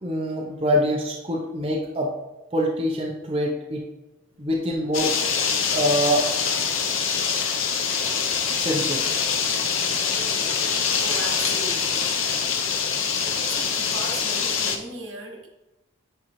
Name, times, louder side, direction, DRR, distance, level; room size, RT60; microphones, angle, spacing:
voice 1, 0.0-2.1 2.5-3.9 4.4-5.1 5.7-6.6 8.5-9.0 10.1-10.9 13.2-13.5, equal, 25° right, -2 dB, 0.7 m, -25 dB
sound 1, 4.9-14.8, left 6 dB, 70° left, 0.7 m, -24 dB
voice 2, 10.3-12.9 13.5-15.5, right 2 dB, 70° right, -1 dB, 1.5 m, -38 dB
10.0 x 3.8 x 3.1 m, 1.0 s
head